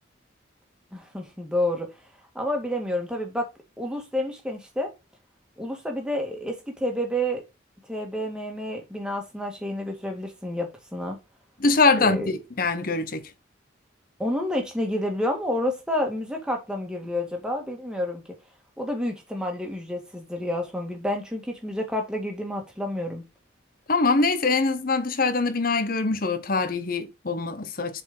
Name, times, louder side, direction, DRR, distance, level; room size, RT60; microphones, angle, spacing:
voice 1, 0.9-1.9 2.4-3.4 3.8-4.9 5.6-7.4 7.9-11.2 12.0-12.4 14.2-18.2 18.8-23.2, left 1 dB, 5° right, 1.9 m, -29 dB
voice 2, 11.6-13.2 23.9-28.0, left 3 dB, 50° left, 0.9 m, -23 dB
7.3 x 4.4 x 5.3 m
head